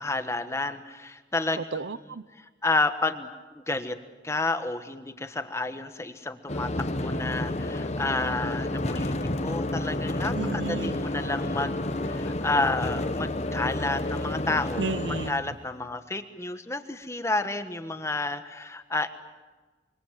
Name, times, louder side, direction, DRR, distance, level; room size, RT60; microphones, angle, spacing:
voice 1, 0.0-1.6 2.4-4.0 4.2-9.1 9.4-14.8 15.3-19.1, left 2 dB, 15° left, 9 dB, 1.3 m, -30 dB
voice 2, 1.7-2.2 10.3-11.0 14.8-15.4, right 3 dB, 85° right, 16 dB, 0.8 m, -32 dB
sound 1, 6.5-15.3, left 1 dB, 40° left, 1.2 m, -30 dB
Ocean / Boat Water vehicle / Alarm, 8.2-15.7, left 1 dB, 65° left, 3.4 m, -39 dB
26.5 x 24.0 x 7.5 m, 1.3 s
head